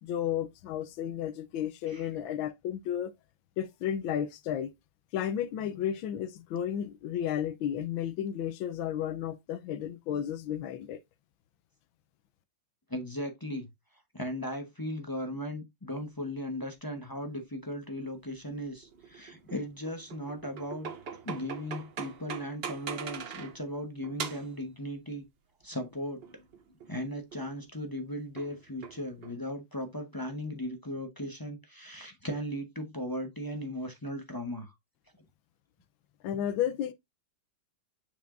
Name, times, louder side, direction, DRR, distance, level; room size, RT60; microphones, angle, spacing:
voice 1, 0.0-3.1 3.6-4.7 5.1-11.0 36.2-36.9, left 10 dB, 85° left, 1.5 m, -33 dB
voice 2, 12.9-13.7 14.1-20.9 21.2-25.3 25.6-26.2 26.9-34.7, equal, 20° left, 0.6 m, -37 dB
sound 1, 18.6-23.6 24.0-24.6 25.8-27.0 27.3-27.5 28.4-29.4, right 6 dB, 60° right, 0.6 m, -42 dB
6.9 x 6.0 x 2.5 m
omnidirectional pair, 2.1 m